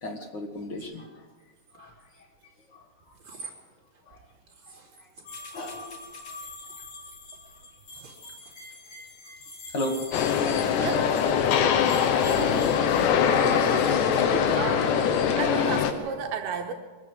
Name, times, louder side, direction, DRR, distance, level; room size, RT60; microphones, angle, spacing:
voice 1, 0.0-1.2 1.7-1.9 2.7-2.8 4.1-4.2 4.7-5.1 5.5-6.0 6.3-6.4 9.7-10.0, left 1 dB, 60° left, 4 dB, 1.2 m, -35 dB
sound 1, 0.8-0.9 1.6-2.2 3.1-3.5 3.9-4.0 4.5-5.2 5.5-6.2 6.4-7.4 7.9-8.9 9.4-10.0 10.3-11.1 12.0-12.6 12.9-14.5, right 4 dB, 30° right, 3.2 m, -41 dB
sound 2, 5.2-15.4, left 2 dB, 40° left, 3.5 m, -44 dB
sound 3, 10.1-15.9, left 7 dB, 85° left, 3.4 m, -23 dB
voice 2, 10.7-11.2 12.0-12.6 12.9-13.1 13.6-14.0 14.6-16.7, right 6 dB, 75° right, 4 dB, 2.8 m, -35 dB
23.5 x 14.0 x 8.0 m, 1.4 s
omnidirectional pair, 4.9 m